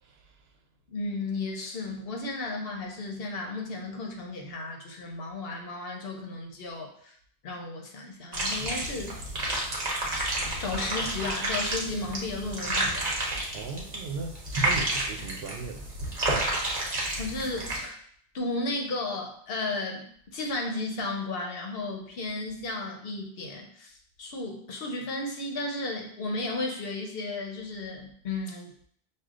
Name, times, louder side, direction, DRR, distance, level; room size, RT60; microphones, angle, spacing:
voice 1, 0.0-0.3 13.5-15.9, right 4 dB, 80° right, 4 dB, 0.9 m, -38 dB
voice 2, 0.9-7.2 7.4-9.1 10.6-13.0 17.1-18.0 18.3-20.0 20.3-28.7, left 2 dB, 70° left, 2 dB, 0.9 m, -34 dB
sound 1, 8.3-17.8, right 2 dB, 45° right, 0.9 m, -30 dB
6.3 x 2.4 x 2.4 m, 0.63 s
omnidirectional pair, 1.0 m